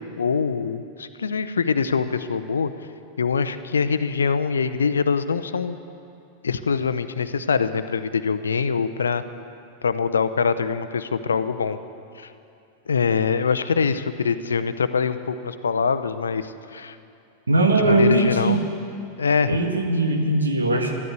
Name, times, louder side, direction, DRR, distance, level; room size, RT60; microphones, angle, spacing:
voice 1, 0.0-2.7 3.2-5.8 6.4-9.2 9.8-11.8 12.1-12.3 12.9-17.0 17.8-18.6 19.2-19.6, left 5 dB, 70° left, 12 dB, 0.6 m, -24 dB
voice 2, 17.5-18.6 19.5-20.9, right 2 dB, 75° right, 3 dB, 1.6 m, -20 dB
13.0 x 12.0 x 8.3 m, 2.6 s
figure-of-eight pair, 90°, 0 cm